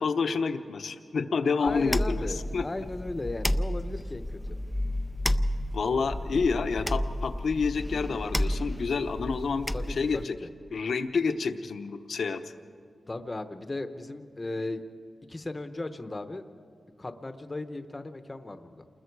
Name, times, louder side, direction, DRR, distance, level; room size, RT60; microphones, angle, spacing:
voice 1, 0.0-2.6 5.7-10.3 10.7-12.4, left 5 dB, 70° left, 8 dB, 0.9 m, -29 dB
voice 2, 1.6-4.4 9.7-10.5 13.1-14.8 15.3-16.4 17.0-18.8, left 2 dB, 20° left, 9 dB, 0.9 m, -36 dB
sound 1, 1.7-10.2, left 1 dB, 5° left, 0.4 m, -31 dB
29.0 x 20.5 x 4.7 m, 2.5 s
wide cardioid pair, 165°, 0 cm